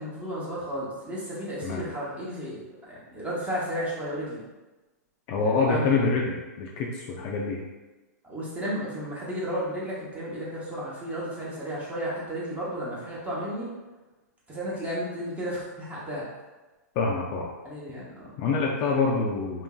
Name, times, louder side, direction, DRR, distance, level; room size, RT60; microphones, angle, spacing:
voice 1, 0.0-4.4 5.4-6.1 8.2-13.7 14.5-16.3 17.6-18.3, equal, 15° right, -7 dB, 0.8 m, -33 dB
voice 2, 5.3-7.6 17.0-17.5 18.4-19.6, left 4 dB, 35° left, -2 dB, 0.3 m, -26 dB
2.9 x 2.5 x 2.3 m, 1.2 s
hypercardioid pair, 145°, 9 cm